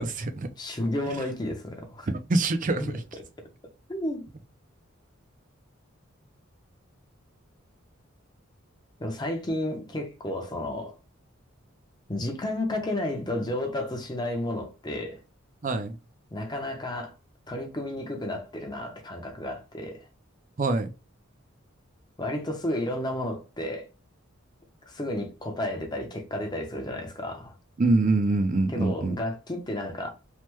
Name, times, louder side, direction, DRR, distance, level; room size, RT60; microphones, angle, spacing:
voice 1, 0.0-0.5 2.1-3.0 15.6-15.9 20.6-20.9 27.8-29.2, right 2 dB, 40° right, 0.5 m, -25 dB
voice 2, 0.6-2.1 2.8-3.2 3.9-4.2 9.0-11.0 12.1-15.2 16.3-17.1 17.5-20.0 22.2-23.9 24.9-27.5 28.7-30.1, left 1 dB, 20° left, 0.6 m, -32 dB
3.3 x 2.1 x 3.0 m
head